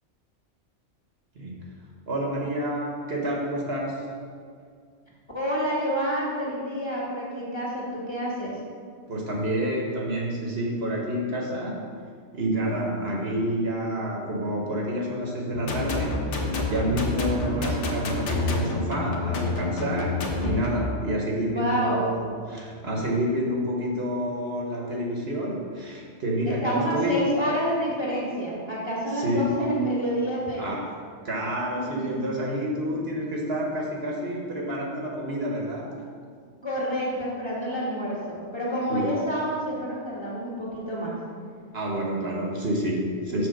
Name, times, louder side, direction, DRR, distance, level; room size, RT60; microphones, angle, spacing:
voice 1, 2.1-4.1 9.1-12.0 12.3-27.3 29.1-29.5 30.6-30.9 31.2-36.0 38.9-39.1 41.7-43.5, equal, 60° right, -1 dB, 1.2 m, -28 dB
voice 2, 5.3-8.6 21.4-22.1 26.4-30.8 31.8-32.2 36.6-41.1 43.3-43.4, equal, 25° left, -7 dB, 2.0 m, -28 dB
rhythmic bass loop, 15.5-20.7, left 3 dB, 75° left, 1.2 m, -28 dB
6.2 x 4.3 x 6.4 m, 2.1 s
omnidirectional pair, 1.2 m